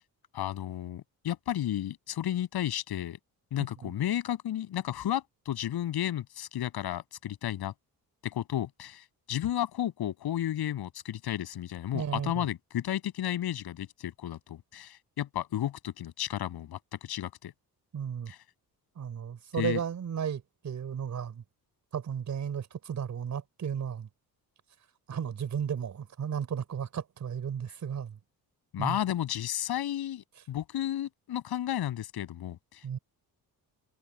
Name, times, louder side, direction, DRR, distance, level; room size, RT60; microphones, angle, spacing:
voice 1, 0.3-3.2 3.5-7.7 8.2-17.5 18.3-18.4 19.6-19.8 28.7-32.8, left 11 dB, 85° left, 7.4 m, -33 dB
voice 2, 11.9-12.4 17.9-18.3 19.0-21.4 21.9-24.1 25.1-28.2 28.8-29.0 32.8-33.0, right 8 dB, 50° right, 5.1 m, -34 dB
cardioid pair, 155°, 37 cm